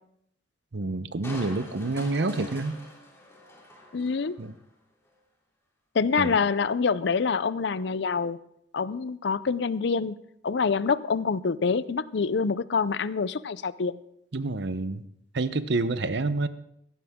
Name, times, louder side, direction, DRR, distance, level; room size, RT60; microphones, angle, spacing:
voice 1, 0.7-2.8 4.4-4.5 6.2-6.4 14.3-15.0 15.3-16.5, right 3 dB, 65° right, 14 dB, 0.7 m, -28 dB
Crushing, 1.2-4.6 5.0-5.1, left 1 dB, 15° left, 3.1 m, -44 dB
voice 2, 3.9-4.3 5.9-8.4 8.7-10.2 10.4-14.0, left 5 dB, 65° left, 17 dB, 0.5 m, -26 dB
17.0 x 15.0 x 3.7 m, 0.73 s
head